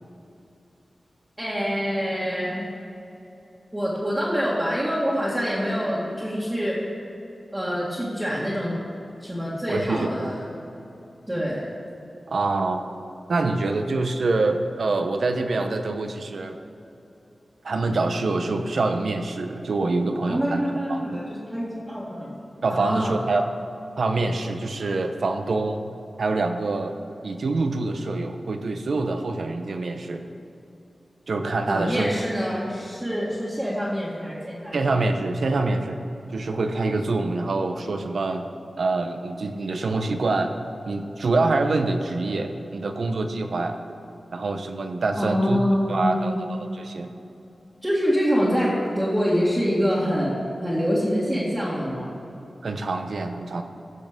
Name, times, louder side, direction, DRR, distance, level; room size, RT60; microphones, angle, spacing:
voice 1, 1.4-2.7 3.7-6.7 7.5-8.8 9.2-10.5 11.3-11.7 20.0-22.3 22.7-23.1 31.7-34.8 45.2-46.4 47.8-52.2, equal, 10° right, -9 dB, 1.9 m, -25 dB
voice 2, 9.7-10.3 12.3-12.8 13.3-16.6 17.6-21.0 22.6-23.5 24.0-25.8 26.2-27.0 27.2-30.2 31.3-32.1 34.7-36.0 36.3-38.5 38.8-40.5 40.9-43.8 44.3-45.6 45.9-47.1 52.6-53.6, right 3 dB, 70° right, 6 dB, 0.8 m, -25 dB
15.5 x 6.5 x 5.1 m, 2.9 s
wide cardioid pair, 125°, 0 cm